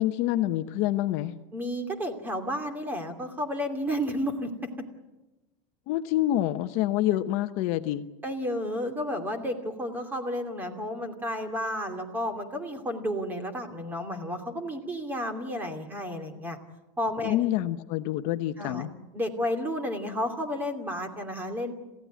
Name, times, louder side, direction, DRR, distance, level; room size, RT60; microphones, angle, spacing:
voice 1, 0.0-1.3 5.9-8.0 17.2-18.9, left 14 dB, 45° left, 9 dB, 0.9 m, -27 dB
voice 2, 1.5-4.7 8.2-16.6 17.0-17.4 18.6-18.9 19.1-21.7, equal, 10° right, 6 dB, 2.8 m, -32 dB
27.0 x 16.0 x 9.4 m, 1.1 s
supercardioid pair, 155°, 16 cm